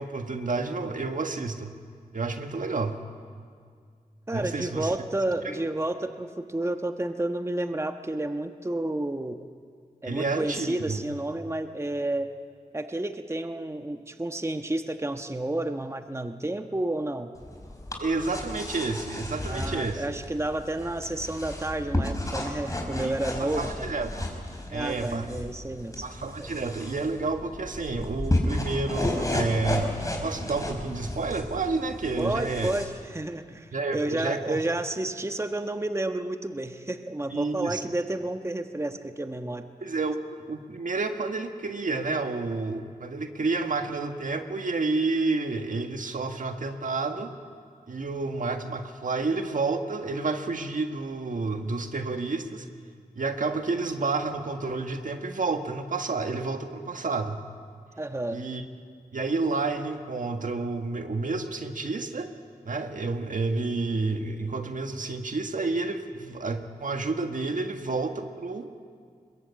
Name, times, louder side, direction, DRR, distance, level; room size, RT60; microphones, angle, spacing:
voice 1, 0.0-1.8 2.1-3.0 4.3-5.0 5.4-5.6 10.0-11.0 18.0-20.0 22.9-23.1 23.4-24.3 24.7-25.3 26.0-30.0 30.2-32.7 33.7-34.8 37.2-37.8 39.8-40.2 40.5-47.3 47.9-52.7 53.1-57.4 58.3-58.7 59.1-62.3 62.6-68.8, right 3 dB, 65° right, 6 dB, 1.7 m, -30 dB
voice 2, 4.3-9.4 10.0-12.3 12.7-17.3 19.5-23.9 24.7-26.1 26.4-26.5 32.2-39.7 58.0-58.4, right 1 dB, 20° right, 7 dB, 1.2 m, -31 dB
sound 1, 17.4-32.9, left 1 dB, 25° left, 4.7 m, -33 dB
21.5 x 21.5 x 8.6 m, 2.1 s
cardioid pair, 45°, 15 cm